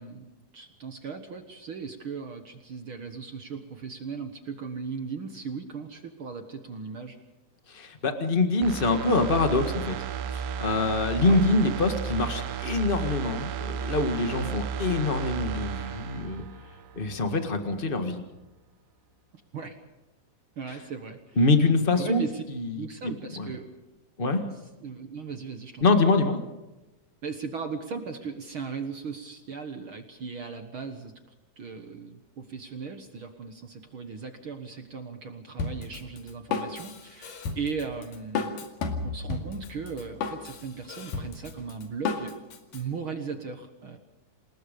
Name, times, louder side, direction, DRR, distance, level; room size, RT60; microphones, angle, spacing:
voice 1, 0.0-7.2 11.2-11.7 19.5-19.8 20.6-21.5 21.9-22.4 22.7-23.7 24.8-25.8 27.2-31.1 31.6-38.7 39.0-42.4 42.7-44.0, right 5 dB, 55° right, 6 dB, 1.5 m, -37 dB
voice 2, 7.7-9.9 10.3-16.4 16.9-18.2 21.4-22.2 22.5-23.5 24.2-24.4 25.8-26.4, left 3 dB, 50° left, 6 dB, 0.6 m, -25 dB
sound 1, 8.6-17.3 17.6-17.7, right 8 dB, 80° right, 2.7 m, -34 dB
Drum kit, 35.6-42.8, left 4 dB, 70° left, 3.7 m, -33 dB
28.0 x 20.0 x 5.3 m, 1.0 s
omnidirectional pair, 4.1 m